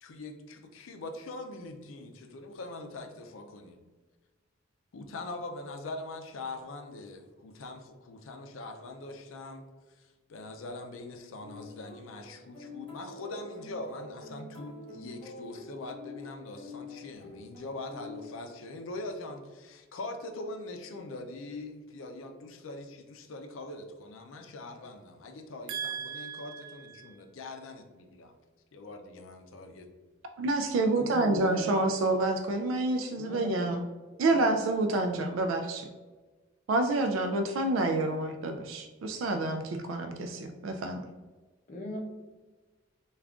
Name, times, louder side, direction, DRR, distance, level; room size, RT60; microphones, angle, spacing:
voice 1, 0.0-3.8 4.9-9.6 10.0-28.4 28.7-29.9, left 2 dB, 85° left, 5 dB, 0.5 m, -42 dB
sound 1, 11.4-18.9, left 3 dB, 10° left, 1.5 m, -47 dB
voice 2, 25.7-27.2 30.4-33.8 34.2-35.9 36.7-41.1, right 2 dB, 90° right, 5 dB, 0.3 m, -29 dB
voice 3, 30.9-31.7 33.2-33.7 34.3-34.6 41.7-42.0, left 1 dB, 40° left, 1 dB, 0.7 m, -38 dB
3.5 x 2.3 x 3.5 m, 1.3 s
head